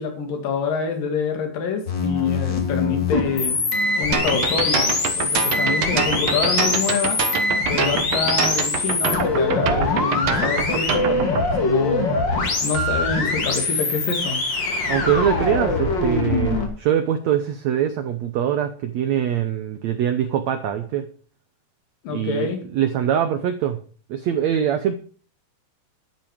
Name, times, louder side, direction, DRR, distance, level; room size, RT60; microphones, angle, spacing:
voice 1, 0.0-3.6 4.0-7.2 7.7-12.1 12.6-14.4 22.0-22.6, left 5 dB, 65° left, 4 dB, 4.0 m, -26 dB
sound 1, 1.9-16.7, left 3 dB, 35° left, 2.5 m, -23 dB
sound 2, 4.1-11.4, right 7 dB, 55° right, 2.0 m, -25 dB
voice 2, 14.9-21.1 22.1-23.8 24.1-25.0, right 9 dB, 80° right, 9 dB, 1.6 m, -23 dB
12.5 x 10.5 x 5.1 m, 0.41 s
omnidirectional pair, 4.3 m